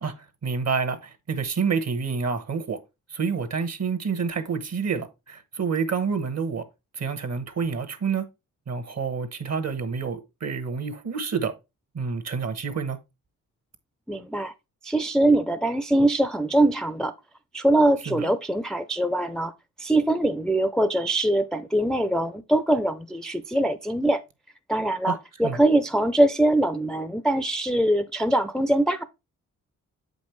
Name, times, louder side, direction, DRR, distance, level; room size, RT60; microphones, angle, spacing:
voice 1, 0.0-2.8 3.1-6.6 7.0-8.2 8.7-11.5 11.9-13.0 18.1-18.3 25.1-25.2 25.4-25.6, right 5 dB, 50° right, 1.2 m, -28 dB
voice 2, 14.1-14.5 14.8-17.1 17.5-19.5 19.8-24.2 24.7-29.0, right 1 dB, ahead, 0.5 m, -22 dB
7.5 x 5.3 x 3.1 m
cardioid pair, 80°, 33 cm